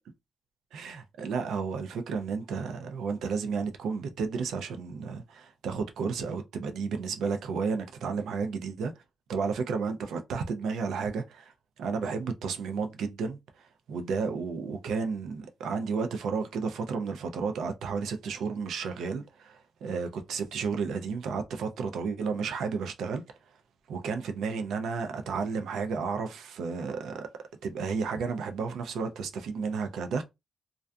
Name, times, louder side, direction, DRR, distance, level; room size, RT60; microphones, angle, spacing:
voice 1, 0.7-8.9 9.3-23.2 23.9-27.3 27.6-30.2, right 5 dB, 75° right, 0.4 m, -32 dB
2.4 x 2.3 x 2.2 m
wide cardioid pair, 180°, 0 cm